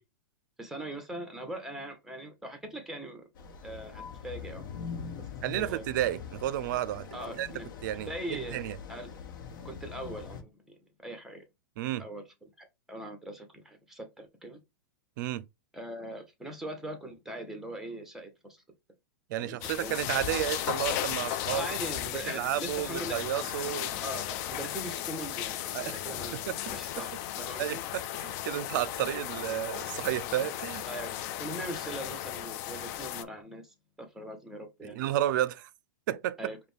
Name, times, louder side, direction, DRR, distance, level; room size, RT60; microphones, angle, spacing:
voice 1, 0.6-3.3 3.6-4.8 5.2-5.3 5.5-5.8 7.1-7.7 8.1-8.6 8.9-9.2 9.6-11.4 12.0-12.2 12.6-14.6 15.7-18.6 19.4-19.9 21.5-23.7 24.0-26.4 26.7-27.8 30.9-35.0 36.4-36.6, right 1 dB, 5° right, 1.0 m, -41 dB
sound 1, 3.4-10.4, left 6 dB, 65° left, 0.9 m, -43 dB
voice 2, 5.4-7.1 7.3-7.5 7.8-8.8 11.8-12.0 15.2-15.5 19.3-21.7 22.3-23.9 25.7-26.0 26.3-26.6 27.0-27.1 27.6-30.9 34.9-35.7 36.1-36.4, right 13 dB, 60° right, 0.5 m, -32 dB
sound 2, 19.6-33.2, left 12 dB, 45° left, 0.4 m, -35 dB
5.0 x 2.2 x 3.2 m
hypercardioid pair, 125°, 12 cm